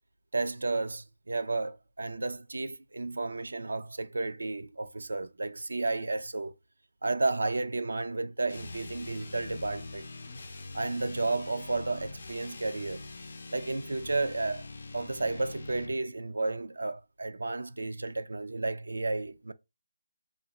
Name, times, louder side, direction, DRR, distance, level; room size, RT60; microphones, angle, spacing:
voice 1, 0.3-6.5 7.0-10.1 10.7-13.1 13.5-14.7 14.9-19.5, right 3 dB, 80° right, 0.4 m, -32 dB
sound 1, 8.5-16.0, left 3 dB, 60° left, 0.5 m, -44 dB
3.7 x 2.1 x 3.1 m
figure-of-eight pair, 160°, 0 cm